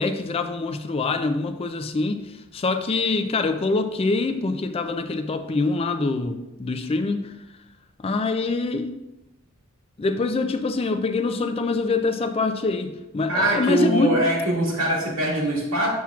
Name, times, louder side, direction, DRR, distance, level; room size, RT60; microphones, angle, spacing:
voice 1, 0.0-7.3 8.0-8.9 10.0-14.1, left 3 dB, 30° left, 8 dB, 0.3 m, -25 dB
voice 2, 13.3-15.9, right 1 dB, 90° right, -4 dB, 2.1 m, -22 dB
7.1 x 5.8 x 2.4 m, 0.97 s
head